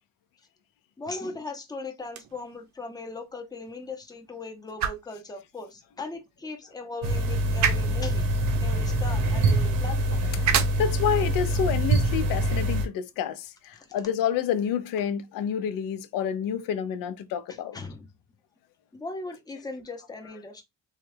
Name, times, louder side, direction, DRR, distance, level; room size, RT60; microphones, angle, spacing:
voice 1, 1.0-8.2 8.6-10.2 11.5-11.7 17.5-18.1 18.9-20.6, left 3 dB, 10° left, 0.6 m, -38 dB
sound 1, 2.0-14.1, right 8 dB, 55° right, 0.6 m, -35 dB
sound 2, 7.0-12.9, right 1 dB, 85° right, 0.8 m, -25 dB
voice 2, 10.4-17.8, left 8 dB, 75° left, 0.5 m, -29 dB
3.1 x 2.3 x 3.2 m
cardioid pair, 125°, 33 cm